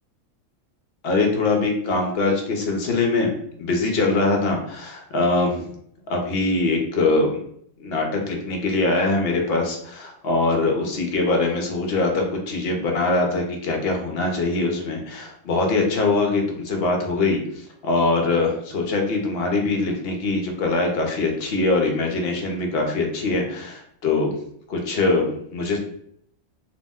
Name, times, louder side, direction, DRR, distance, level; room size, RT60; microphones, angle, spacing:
voice 1, 1.0-3.3 3.6-5.6 6.1-7.3 7.8-24.3 24.7-25.8, left 3 dB, 60° left, 2 dB, 0.8 m, -23 dB
2.8 x 2.1 x 3.4 m, 0.68 s
omnidirectional pair, 1.3 m